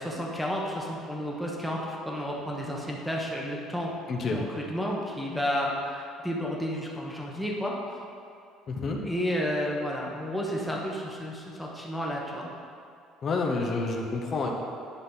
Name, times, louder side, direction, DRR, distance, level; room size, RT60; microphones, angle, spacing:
voice 1, 0.0-3.9 4.3-7.7 9.0-12.5, equal, ahead, -3 dB, 1.0 m, -31 dB
voice 2, 4.1-4.4 8.7-9.0 13.2-14.5, left 3 dB, 35° left, 1 dB, 0.8 m, -29 dB
9.9 x 5.4 x 4.0 m, 2.4 s
cardioid pair, 155°, 0 cm